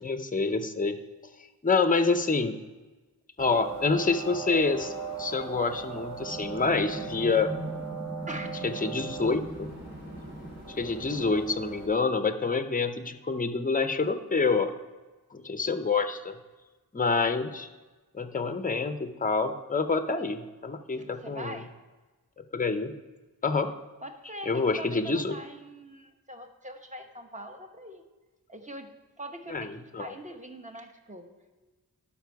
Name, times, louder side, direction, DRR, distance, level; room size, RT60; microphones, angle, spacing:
voice 1, 0.0-1.0 1.6-2.6 3.4-4.9 5.2-7.5 8.6-9.7 10.8-14.7 15.3-16.4 16.9-17.7 18.1-21.6 22.5-22.9 23.4-23.7 24.5-25.4 29.5-30.1, left 4 dB, 20° left, 9 dB, 0.6 m, -27 dB
sound 1, 3.4-11.9, right 3 dB, 45° right, 2.9 m, -38 dB
voice 2, 21.0-21.7 24.0-28.0 28.5-28.9 29.2-31.3 31.6-31.7, right 1 dB, 20° right, 4 dB, 1.1 m, -43 dB
11.5 x 5.4 x 4.6 m, 1.2 s
wide cardioid pair, 50°, 38 cm